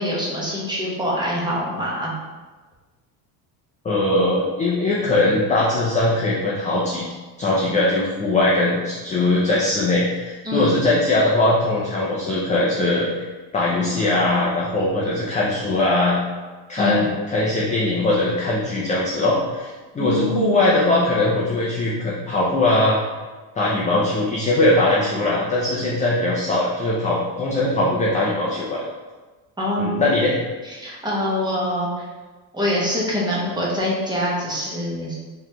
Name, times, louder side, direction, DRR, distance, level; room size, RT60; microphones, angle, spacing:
voice 1, 0.0-2.1 10.4-10.8 16.8-17.1 20.0-20.6 29.6-30.1 30.6-32.0 32.5-35.2, equal, 10° right, -5 dB, 0.8 m, -24 dB
voice 2, 3.8-7.0 7.4-13.3 13.5-16.2 16.7-23.0 23.6-28.8 29.8-30.3, left 2 dB, 15° left, -5 dB, 0.4 m, -20 dB
3.9 x 3.2 x 2.8 m, 1.3 s
cardioid pair, 135°, 45 cm